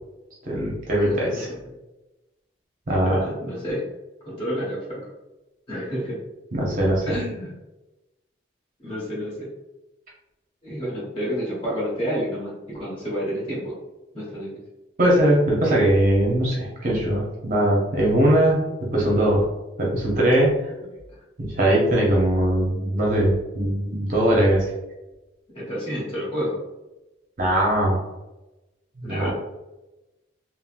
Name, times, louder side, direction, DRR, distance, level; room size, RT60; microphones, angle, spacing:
voice 1, 0.4-1.5 2.9-3.3 6.5-7.1 15.0-18.6 18.9-19.5 19.8-20.7 21.4-24.7 27.4-28.1 29.0-29.3, right 1 dB, 45° right, -4 dB, 0.6 m, -20 dB
voice 2, 0.9-1.4 3.0-3.9 4.2-5.0 5.7-6.2 7.0-7.5 8.8-9.5 10.6-13.7 14.1-14.6 25.5-26.6 29.0-29.3, equal, 30° left, -7 dB, 1.1 m, -29 dB
3.5 x 2.0 x 2.4 m, 1.0 s
head